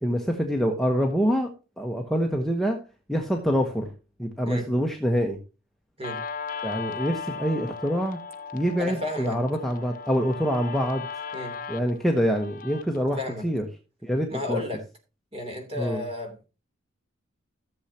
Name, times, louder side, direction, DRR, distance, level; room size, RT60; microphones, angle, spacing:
voice 1, 0.0-1.5 1.8-2.8 3.1-3.9 4.2-5.4 6.6-8.2 8.5-11.1 11.7-13.6 14.0-14.6 15.8-16.0, equal, ahead, 1 dB, 1.0 m, -25 dB
Guitar, 6.0-13.0, left 5 dB, 40° left, 0.8 m, -37 dB
voice 2, 8.8-9.4 11.3-11.5 13.2-13.4 14.3-14.8 15.3-16.5, left 1 dB, 30° right, 4 dB, 3.1 m, -32 dB
15.0 x 7.2 x 2.8 m, 0.32 s
head